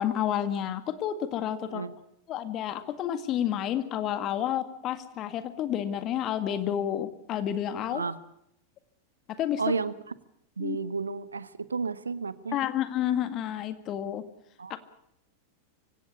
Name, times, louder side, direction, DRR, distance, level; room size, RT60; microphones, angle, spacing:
voice 1, 0.0-1.9 2.3-8.0 9.3-9.6 10.6-10.8 12.5-14.2 14.7-14.8, left 10 dB, 35° left, 11 dB, 1.9 m, -30 dB
voice 2, 9.6-9.9 10.6-12.6 14.6-14.8, right 4 dB, 75° right, 17 dB, 1.0 m, -32 dB
25.0 x 17.0 x 8.4 m, 0.78 s
figure-of-eight pair, 90°, 0 cm